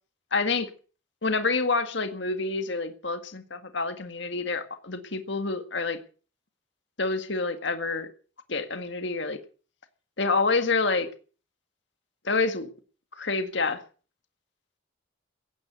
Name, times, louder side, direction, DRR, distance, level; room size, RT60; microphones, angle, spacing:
voice 1, 0.3-0.7 1.2-6.0 7.0-8.1 8.5-9.4 10.2-11.1 12.3-12.7 13.2-13.8, left 3 dB, 60° left, 1.8 m, -27 dB
16.5 x 9.9 x 7.9 m
head